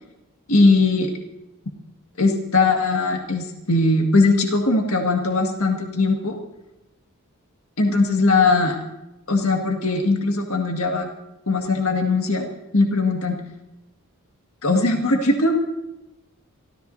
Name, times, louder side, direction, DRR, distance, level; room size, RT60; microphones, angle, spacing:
voice 1, 0.5-1.1 2.2-6.4 7.8-8.8 9.3-11.1 11.5-12.5 12.7-13.4 14.6-15.6, left 3 dB, 70° left, 2 dB, 1.9 m, -19 dB
27.0 x 14.0 x 2.7 m, 0.95 s
head